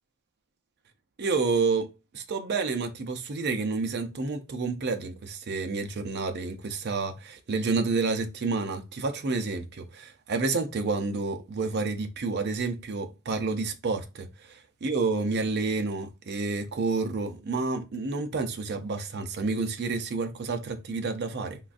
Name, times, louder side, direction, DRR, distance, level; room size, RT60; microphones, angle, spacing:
voice 1, 1.2-21.6, right 4 dB, 50° right, 0.5 m, -29 dB
3.7 x 2.3 x 2.5 m
head